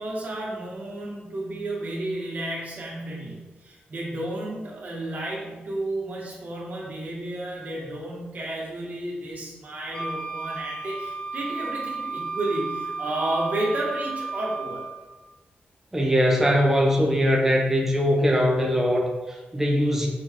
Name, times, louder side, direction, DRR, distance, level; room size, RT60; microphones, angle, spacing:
voice 1, 0.0-14.9, right 1 dB, 50° right, -4 dB, 1.9 m, -32 dB
Wind instrument woodwind instrument, 9.9-15.1, right 3 dB, 25° left, 1.1 m, -33 dB
voice 2, 15.9-20.1, equal, 10° right, -1 dB, 0.9 m, -21 dB
6.4 x 4.5 x 3.7 m, 1.2 s
wide cardioid pair, 155°, 4 cm